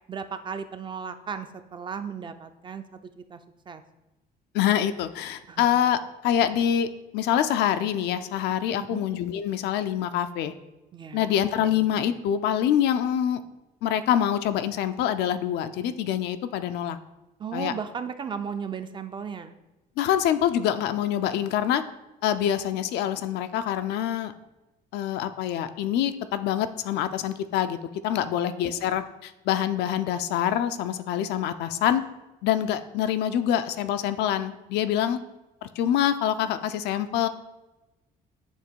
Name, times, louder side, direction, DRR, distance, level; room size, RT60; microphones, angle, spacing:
voice 1, 0.1-3.4 3.7-3.8 5.5-5.7 8.8-9.1 10.9-11.4 17.4-19.5 28.2-28.9, right 6 dB, 30° right, 9 dB, 0.4 m, -36 dB
voice 2, 4.5-6.9 7.1-10.5 11.1-13.4 13.8-17.0 17.5-17.7 20.0-21.8 22.2-24.3 24.9-27.8 28.0-32.0 32.4-35.2 35.6-37.3, left 10 dB, 80° left, 10 dB, 0.4 m, -25 dB
7.2 x 3.0 x 4.5 m, 1.0 s
cardioid pair, 110°, 17 cm